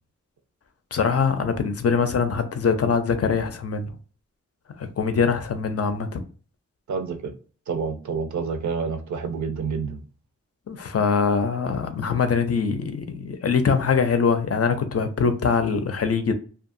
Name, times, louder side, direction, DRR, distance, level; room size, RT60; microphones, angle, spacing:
voice 1, 0.9-3.9 4.8-6.2 10.7-16.3, left 5 dB, 55° left, 0.5 m, -23 dB
voice 2, 6.9-7.3 7.7-10.0, right 5 dB, 80° right, 0.5 m, -28 dB
2.7 x 2.3 x 2.5 m
wide cardioid pair, 115°, 29 cm